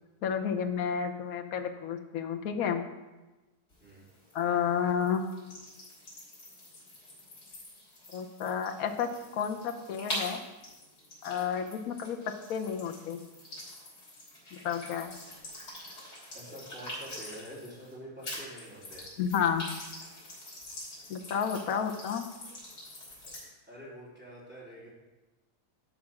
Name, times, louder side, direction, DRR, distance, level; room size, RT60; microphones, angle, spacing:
voice 1, 0.2-2.8 4.3-5.3 8.1-10.4 11.2-12.2 12.5-13.2 14.5-15.1 19.2-19.7 21.1-22.2, left 7 dB, 60° left, 5 dB, 1.2 m, -31 dB
sound 1, 3.7-17.9 18.2-23.5, left 1 dB, 85° left, 4.1 m, -45 dB
voice 2, 16.3-19.1 21.5-21.8 23.7-24.9, equal, 5° right, -9 dB, 3.9 m, -47 dB
11.5 x 5.0 x 5.9 m, 1.1 s
omnidirectional pair, 1.8 m